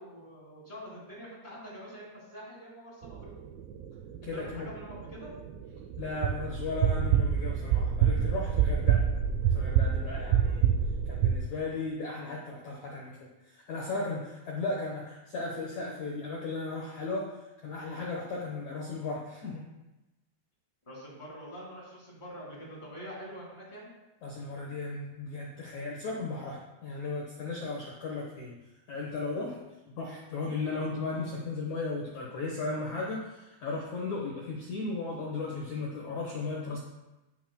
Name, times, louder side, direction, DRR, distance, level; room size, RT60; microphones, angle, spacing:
voice 1, 0.0-3.4 4.2-5.3 20.9-23.9, equal, 20° left, -5 dB, 1.8 m, -45 dB
sound 1, 3.0-11.3, right 8 dB, 85° right, 2.9 m, -27 dB
voice 2, 4.2-4.7 6.0-9.1 9.5-10.7 11.1-17.4 17.6-19.6 24.2-28.6 28.9-29.6 29.9-36.8, left 3 dB, 70° left, -3 dB, 1.7 m, -36 dB
15.0 x 6.1 x 2.3 m, 1.0 s
omnidirectional pair, 5.0 m